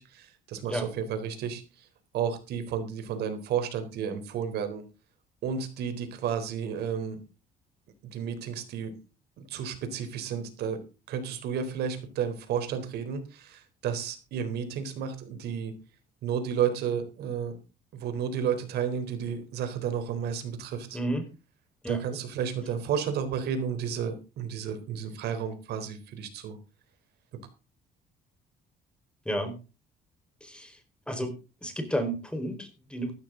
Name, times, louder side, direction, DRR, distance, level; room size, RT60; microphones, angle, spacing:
voice 1, 0.0-1.9 2.1-4.8 5.4-7.2 8.0-9.0 9.4-10.8 11.1-15.8 16.2-17.6 17.9-21.0 21.9-26.6, right 7 dB, 75° right, 8 dB, 3.9 m, -32 dB
voice 2, 20.9-21.3 21.8-22.0 29.2-29.6 30.4-30.8 31.1-33.1, right 1 dB, 5° left, 6 dB, 4.6 m, -32 dB
15.5 x 12.5 x 3.9 m, 0.32 s
cardioid pair, 110°, 17 cm